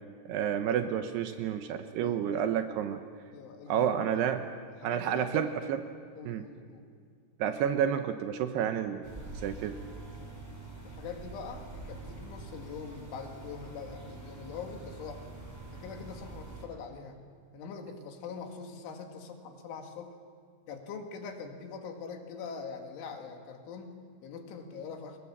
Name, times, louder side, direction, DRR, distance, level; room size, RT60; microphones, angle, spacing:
voice 1, 0.3-3.0 3.7-4.4 4.8-5.8 6.3-6.4 7.4-9.1 9.4-9.8, right 9 dB, 75° right, 8 dB, 2.7 m, -30 dB
voice 2, 2.0-2.4 3.3-4.3 4.8-5.5 6.2-6.9 10.1-10.4 10.8-15.3 15.7-17.2 17.5-20.2 20.7-25.2, left 5 dB, 85° left, 3 dB, 4.6 m, -43 dB
sound 1, 9.0-16.7, right 3 dB, 5° right, 4.6 m, -45 dB
29.0 x 22.5 x 7.4 m, 2.1 s
omnidirectional pair, 5.4 m